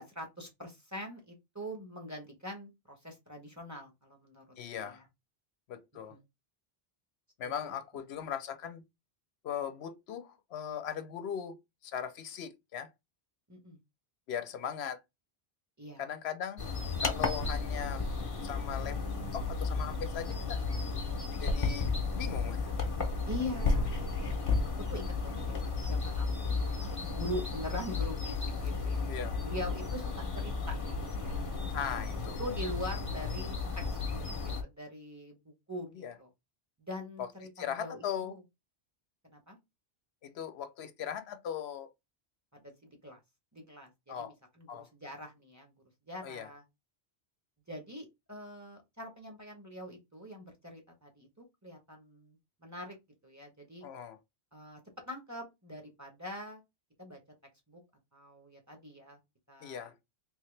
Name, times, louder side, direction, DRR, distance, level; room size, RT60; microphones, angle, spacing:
voice 1, 0.0-4.4 4.7-5.0 5.9-6.2 7.4-7.5 13.5-13.8 15.8-16.0 23.3-24.1 24.9-26.3 26.5-29.0 29.4-31.4 32.4-33.6 34.1-36.3 36.8-38.4 39.2-39.6 42.5-43.2 43.5-45.7 46.1-46.6 47.7-53.0 53.2-53.9 54.5-56.6 57.0-57.2 57.7-57.8 58.1-59.2 59.5-59.9, equal, 20° right, 0.8 m, -43 dB
voice 2, 4.6-5.0 5.7-6.2 7.4-8.8 9.4-11.6 11.8-12.9 14.3-15.0 16.0-16.7 17.0-18.0 18.4-19.0 19.3-20.6 21.4-21.9 22.2-22.7 29.1-29.4 31.7-32.4 35.9-36.1 37.2-37.3 37.6-38.3 40.2-41.9 44.1-44.3 44.7-44.9 46.2-46.5 53.8-54.2 59.6-59.9, left 8 dB, 80° left, 0.9 m, -39 dB
sound 1, 16.6-34.6, left 4 dB, 35° left, 0.7 m, -33 dB
3.4 x 2.8 x 3.2 m
omnidirectional pair, 1.1 m